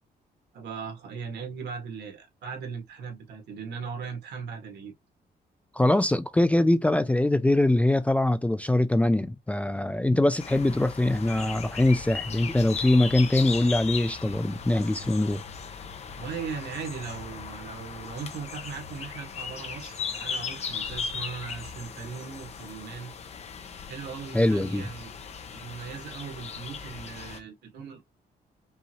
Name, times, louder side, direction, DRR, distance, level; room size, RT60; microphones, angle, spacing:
voice 1, 0.5-4.9 16.2-23.1 23.9-25.1 25.5-28.0, right 6 dB, 90° right, 1.8 m, -38 dB
voice 2, 5.8-15.4 24.3-24.9, left 1 dB, 10° left, 0.3 m, -23 dB
sound 1, 10.4-27.4, left 6 dB, 40° left, 0.8 m, -37 dB
5.5 x 2.6 x 2.9 m
wide cardioid pair, 170°, 17 cm